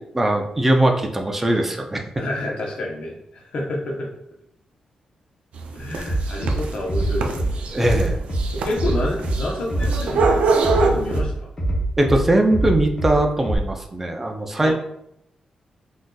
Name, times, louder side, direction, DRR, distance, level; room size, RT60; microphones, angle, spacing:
voice 1, 0.1-2.2 7.7-8.2 12.0-14.7, right 1 dB, 15° right, 3 dB, 0.4 m, -20 dB
voice 2, 2.2-4.1 5.7-7.8 8.5-11.5 14.6-14.7, left 1 dB, 55° left, -1 dB, 0.8 m, -28 dB
sound 1, 5.6-11.2, right 4 dB, 85° right, 0.4 m, -24 dB
Bass drum, 6.1-6.6 6.9-7.5 7.8-8.4 8.8-9.4 9.7-10.3 10.6-11.2 11.6-12.2 12.5-13.1 13.4-13.6, right 2 dB, 25° left, 0.7 m, -23 dB
3.7 x 2.6 x 2.3 m, 0.76 s
wide cardioid pair, 160°, 2 cm